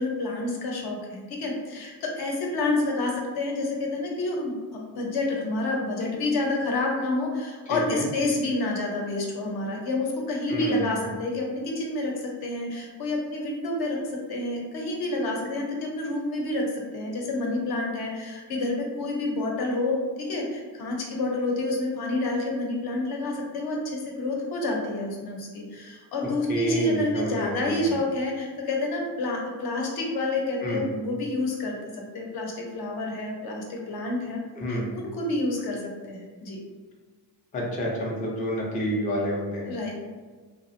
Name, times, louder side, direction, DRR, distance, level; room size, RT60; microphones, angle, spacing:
voice 1, 0.0-14.0 14.3-16.6 16.9-34.4 34.7-36.6 39.7-40.0, left 2 dB, 60° left, -1 dB, 0.7 m, -29 dB
voice 2, 7.7-8.1 10.5-11.1 26.5-28.0 30.6-30.8 34.6-34.9 37.5-39.7, equal, 20° left, -2 dB, 0.4 m, -29 dB
2.5 x 2.0 x 2.5 m, 1.4 s
cardioid pair, 100°, 42 cm